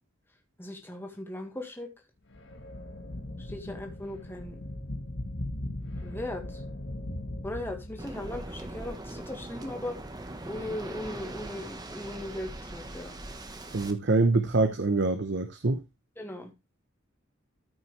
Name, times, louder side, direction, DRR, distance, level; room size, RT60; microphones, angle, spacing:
voice 1, 0.6-1.9 3.4-4.6 6.0-6.6 7.4-10.0 10.4-13.1 16.2-16.5, left 1 dB, 10° left, 1.7 m, -38 dB
sound 1, 2.3-8.4, left 1 dB, 60° left, 1.5 m, -39 dB
Waves surf, 8.0-13.9, right 1 dB, 20° right, 1.0 m, -41 dB
voice 2, 13.7-15.8, right 3 dB, 60° right, 0.8 m, -25 dB
13.5 x 6.0 x 3.2 m
head